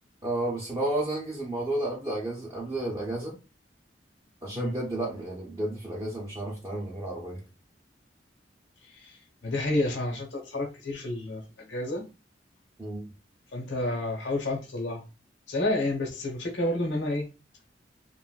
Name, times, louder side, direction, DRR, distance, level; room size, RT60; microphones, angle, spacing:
voice 1, 0.2-3.3 4.4-7.4 12.8-13.0, right 1 dB, 20° right, 0.6 m, -32 dB
voice 2, 9.4-12.0 13.5-15.0 15.5-17.3, left 1 dB, 85° left, 0.8 m, -30 dB
3.1 x 2.5 x 2.2 m
head